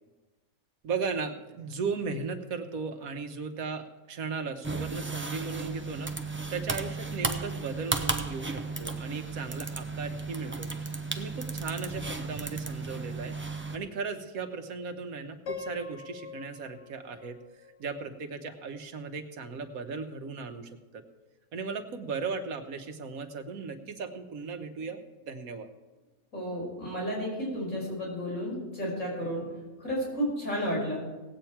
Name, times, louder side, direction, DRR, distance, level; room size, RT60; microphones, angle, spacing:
voice 1, 0.8-10.7 11.2-17.4 17.8-21.0 21.5-25.7, right 4 dB, 85° right, 7 dB, 1.5 m, -36 dB
sound 1, 4.6-13.8, right 3 dB, 15° right, 0.4 m, -34 dB
Piano, 15.5-18.5, left 5 dB, 60° left, 1.3 m, -43 dB
voice 2, 26.3-29.4 29.8-31.0, equal, 75° left, -5 dB, 5.9 m, -32 dB
18.0 x 8.7 x 4.5 m, 1.2 s
omnidirectional pair, 1.5 m